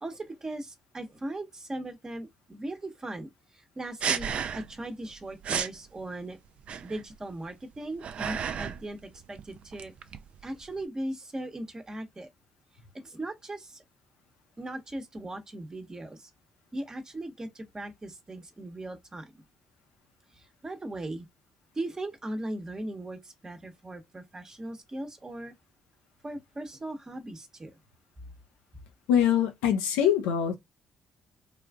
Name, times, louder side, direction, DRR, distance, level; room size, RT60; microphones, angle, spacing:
voice 1, 0.0-4.3 4.5-6.4 6.8-9.9 10.4-12.3 12.9-13.8 14.6-16.3 16.7-19.4 20.3-21.3 21.7-25.5 26.2-27.8, right 1 dB, 30° right, 0.9 m, -38 dB
sound 1, 4.0-4.8 5.1-5.2 5.4-5.8 6.6-7.2 7.7-8.9 9.1-10.8, right 7 dB, 55° right, 0.3 m, -32 dB
voice 2, 29.1-30.6, left 9 dB, 85° left, 0.5 m, -23 dB
3.1 x 2.4 x 2.3 m
hypercardioid pair, 50°, 2 cm